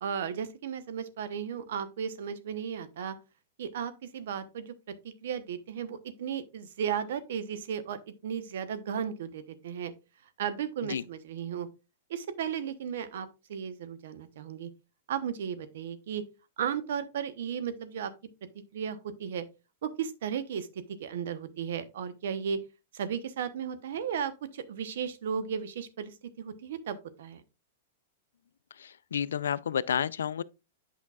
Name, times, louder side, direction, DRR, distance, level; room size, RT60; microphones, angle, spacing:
voice 1, 0.0-3.1 3.6-4.9 5.2-9.9 10.4-11.7 12.1-14.7 15.1-16.2 16.6-18.1 18.7-19.4 19.8-20.7 21.0-22.6 22.9-27.4, right 8 dB, 70° right, 0.9 m, -35 dB
voice 2, 29.1-30.4, left 8 dB, 85° left, 0.3 m, -29 dB
8.4 x 5.7 x 2.3 m
hypercardioid pair, 125°, 0 cm